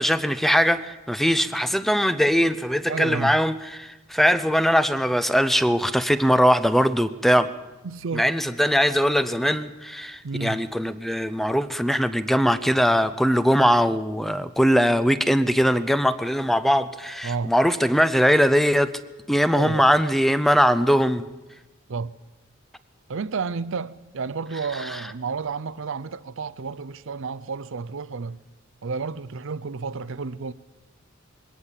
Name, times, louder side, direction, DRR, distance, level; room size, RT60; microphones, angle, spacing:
voice 1, 0.0-7.5 8.1-18.9 19.3-21.2, equal, ahead, 0.6 m, -21 dB
voice 2, 2.9-3.4 7.8-8.3 10.2-10.6 17.2-17.5 19.5-19.9 21.9-22.1 23.1-28.4 28.8-30.5, right 4 dB, 65° right, 0.6 m, -31 dB
21.0 x 18.0 x 7.3 m
head